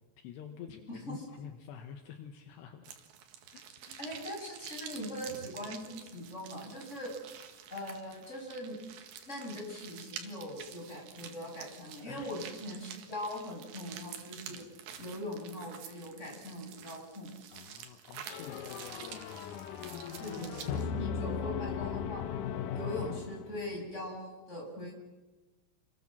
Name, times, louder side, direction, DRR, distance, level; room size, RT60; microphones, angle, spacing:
voice 1, 0.2-3.0 3.5-4.0 10.5-10.6 12.0-12.3 14.5-14.7 17.5-18.7 20.2-21.1, left 8 dB, 75° left, 7 dB, 3.3 m, -48 dB
sound 1, 2.8-20.8, right 8 dB, 75° right, 4.1 m, -48 dB
voice 2, 4.0-7.1 7.7-8.8 9.3-14.7 15.0-17.3 20.2-22.2 22.7-24.9, left 1 dB, 15° left, 0 dB, 7.3 m, -41 dB
sound 2, 18.3-23.9, left 7 dB, 90° left, 1.7 m, -37 dB
29.5 x 21.5 x 7.5 m, 1.2 s
omnidirectional pair, 5.2 m